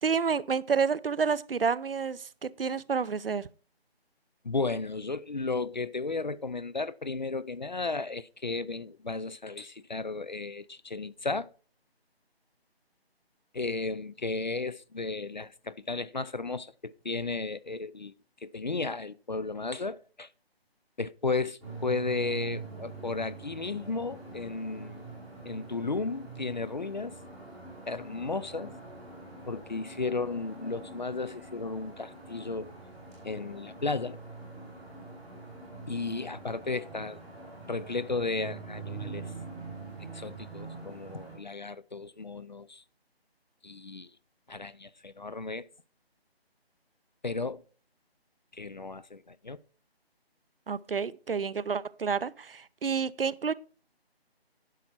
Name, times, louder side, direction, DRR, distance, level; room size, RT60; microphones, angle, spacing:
voice 1, 0.0-3.5 50.7-53.5, right 6 dB, 65° right, 0.6 m, -29 dB
voice 2, 4.4-11.5 13.5-18.1 18.4-20.3 21.0-25.1 25.4-27.2 27.9-28.7 29.5-32.7 33.2-34.2 35.9-37.2 37.7-39.3 40.1-42.8 43.6-44.1 44.5-45.7 47.2-47.6 48.5-49.6, left 3 dB, 45° left, 0.4 m, -34 dB
sound 1, 21.6-41.4, right 3 dB, ahead, 0.9 m, -44 dB
11.0 x 5.8 x 4.4 m
figure-of-eight pair, 160°, 31 cm